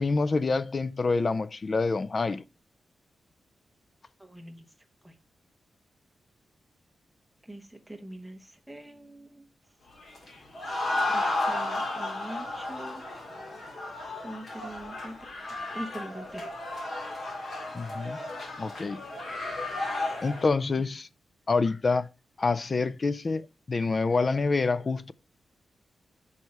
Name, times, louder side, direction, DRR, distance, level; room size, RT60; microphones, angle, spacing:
voice 1, 0.0-2.4 17.7-18.2 18.6-19.0 20.2-21.1 21.5-22.1 22.4-25.1, left 4 dB, 35° left, 0.4 m, -27 dB
voice 2, 4.2-4.7 5.0-5.1 7.4-9.5 11.1-13.0 14.2-16.4, right 1 dB, ahead, 1.0 m, -43 dB
sound 1, 10.0-20.5, left 2 dB, 55° left, 2.1 m, -33 dB
5.5 x 4.6 x 4.7 m
wide cardioid pair, 145°, 0 cm